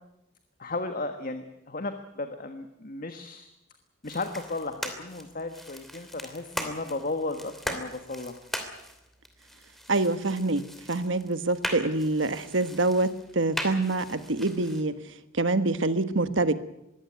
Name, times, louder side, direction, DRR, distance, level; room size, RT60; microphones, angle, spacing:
voice 1, 0.6-3.5 4.0-8.4, left 2 dB, 45° left, 7 dB, 1.5 m, -34 dB
sound 1, 4.0-14.8, equal, ahead, 2.9 m, -39 dB
voice 2, 9.9-10.6 10.9-16.5, right 2 dB, 65° right, 12 dB, 1.3 m, -26 dB
22.0 x 16.5 x 9.5 m, 0.86 s
head